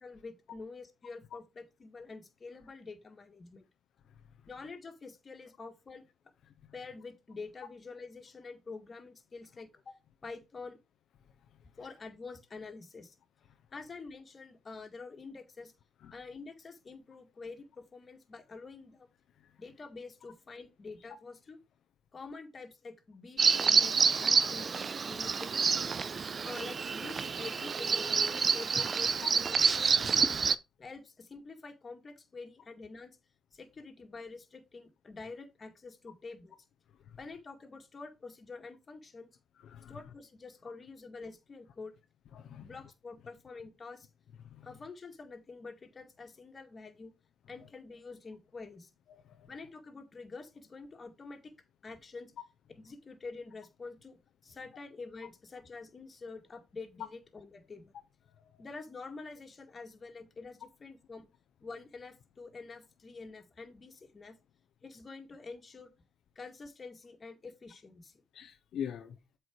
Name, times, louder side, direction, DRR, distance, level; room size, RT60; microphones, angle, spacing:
voice 1, 0.0-3.6 4.5-6.1 6.7-9.8 10.2-10.8 11.8-13.1 13.7-15.7 16.1-19.1 19.6-21.6 22.1-25.7 26.4-30.0 30.8-33.2 33.5-36.6 37.2-39.3 39.9-41.9 42.6-44.1 44.6-47.1 47.5-48.9 49.5-51.5 51.8-52.3 52.8-57.9 58.6-61.3 61.6-64.4 64.8-65.9 66.4-68.1, left 4 dB, 35° left, 2.2 m, -47 dB
Bird vocalization bird call bird song, 23.4-30.6, right 5 dB, 40° right, 0.6 m, -28 dB
voice 2, 39.6-40.0 42.3-42.7 44.4-44.7 49.1-49.5 68.3-69.2, left 9 dB, 70° left, 0.8 m, -43 dB
7.9 x 4.6 x 4.7 m
cardioid pair, 90°, 0 cm